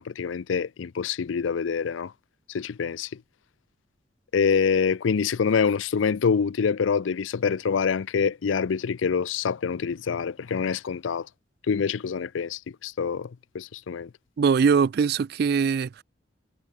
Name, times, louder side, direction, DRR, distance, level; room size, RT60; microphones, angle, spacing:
voice 1, 0.0-2.1 2.5-3.1 4.3-11.3 11.7-13.3 13.5-14.1, left 6 dB, 90° left, 0.5 m, -26 dB
voice 2, 14.4-16.0, right 6 dB, 55° right, 0.3 m, -22 dB
head